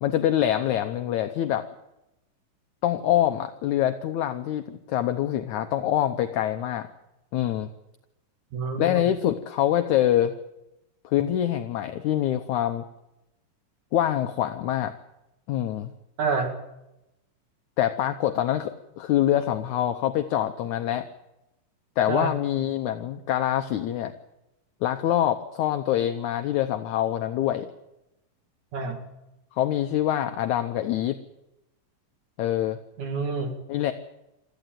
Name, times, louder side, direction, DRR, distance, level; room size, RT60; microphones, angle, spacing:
voice 1, 0.0-1.6 2.8-6.9 7.3-7.7 8.8-10.3 11.0-12.9 13.9-14.9 15.5-15.9 17.8-21.1 22.0-24.1 24.8-27.7 29.6-31.2 32.4-32.8 33.7-33.9, left 11 dB, 70° left, 7 dB, 2.0 m, -25 dB
voice 2, 8.5-9.1 16.2-16.5 22.1-22.3 28.7-29.0 33.0-33.6, right 4 dB, 60° right, 4 dB, 3.4 m, -28 dB
23.0 x 14.5 x 9.1 m, 0.94 s
omnidirectional pair, 3.9 m